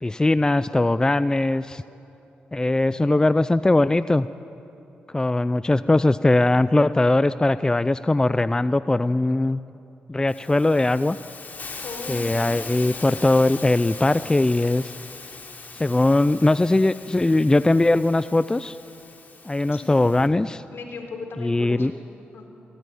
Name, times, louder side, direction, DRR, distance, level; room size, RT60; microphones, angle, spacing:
voice 1, 0.0-1.8 2.5-4.3 5.1-9.6 10.1-11.2 12.1-14.9 15.8-18.8 19.4-20.6 21.4-21.9, left 2 dB, 20° left, 14 dB, 0.5 m, -20 dB
Hiss, 10.3-20.3, left 4 dB, 50° left, 3.4 m, -40 dB
voice 2, 11.8-12.9 19.7-20.0 20.7-21.9 22.3-22.5, left 3 dB, 70° left, 3 dB, 3.9 m, -37 dB
23.0 x 17.0 x 9.5 m, 2.9 s
cardioid pair, 60°, 4 cm